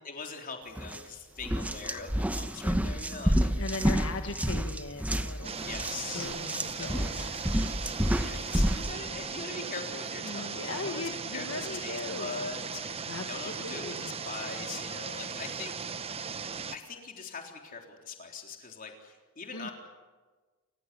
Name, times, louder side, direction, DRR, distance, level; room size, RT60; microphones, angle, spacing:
voice 1, 0.0-4.2 5.4-6.3 6.8-7.0 8.0-11.0 11.3-15.7 16.7-19.7, left 4 dB, 40° left, 2 dB, 3.7 m, -42 dB
sound 1, 0.8-1.0 1.4-8.9, equal, 5° right, 1.1 m, -29 dB
voice 2, 3.6-5.8 6.1-7.5 10.2-12.4 13.0-14.1 19.5-19.7, left 3 dB, 70° left, 5 dB, 1.5 m, -39 dB
sound 2, 5.4-16.8, right 5 dB, 30° right, 0.9 m, -38 dB
28.5 x 16.0 x 9.8 m, 1.3 s
head